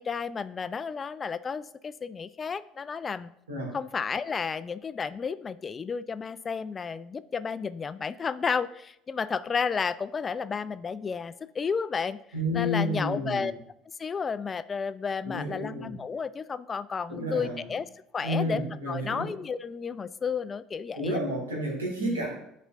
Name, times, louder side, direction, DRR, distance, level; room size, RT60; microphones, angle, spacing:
voice 1, 0.0-3.3 3.7-12.2 12.5-13.5 14.0-17.9 18.1-21.2 22.0-22.3, left 5 dB, 30° left, 15 dB, 0.3 m, -32 dB
voice 2, 12.3-13.5 15.2-15.9 17.1-17.6 18.2-19.3 20.9-22.3, equal, 90° right, -2 dB, 2.1 m, -30 dB
11.0 x 4.2 x 2.5 m, 0.77 s
hypercardioid pair, 65°, 0 cm